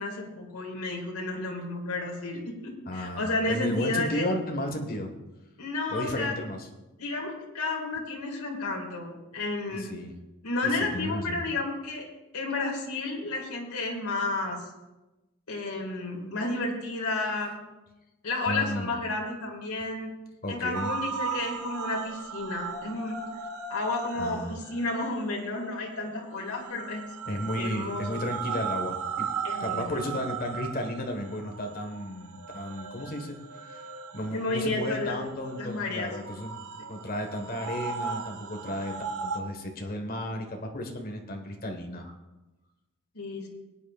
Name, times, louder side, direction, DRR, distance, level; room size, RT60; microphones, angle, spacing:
voice 1, 0.0-4.2 5.6-6.3 7.0-9.9 10.4-12.1 12.3-14.6 15.5-17.6 18.2-20.2 20.5-23.2 23.7-27.0 27.6-28.2 29.4-30.0 34.3-35.2 35.6-36.1 43.1-43.5, left 2 dB, 80° left, -1 dB, 2.2 m, -32 dB
voice 2, 2.8-5.1 5.9-6.7 9.7-10.1 10.6-11.4 18.5-18.9 20.4-20.9 24.2-24.6 27.3-29.3 29.6-38.9 39.2-42.1, left 1 dB, 40° left, 4 dB, 1.5 m, -34 dB
sound 1, 20.7-39.4, right 5 dB, 90° right, 1.0 m, -37 dB
20.5 x 9.3 x 2.5 m, 1.1 s
head